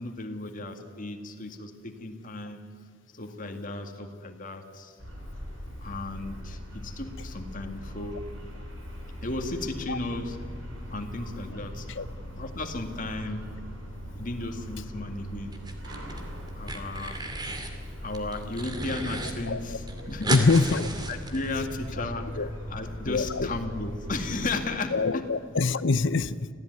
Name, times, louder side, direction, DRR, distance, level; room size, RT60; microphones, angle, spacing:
voice 1, 0.0-2.6 3.1-5.0 5.8-8.2 9.2-10.4 10.9-11.9 12.3-13.5 14.2-15.5 16.6-17.2 18.0-20.8 21.1-25.3, left 2 dB, 40° left, 5 dB, 2.1 m, -35 dB
sound 1, 5.0-24.6, equal, 85° right, 5.7 m, -40 dB
sound 2, 15.5-16.2 16.5-17.7 18.1-19.3 19.6-19.7 19.9-21.8, right 2 dB, 20° right, 2.4 m, -34 dB
voice 2, 19.5-19.8 20.3-20.9 22.4-22.5 23.1-23.5 24.9-26.5, left 3 dB, 60° left, 15 dB, 0.7 m, -24 dB
26.0 x 16.5 x 9.5 m, 2.2 s
head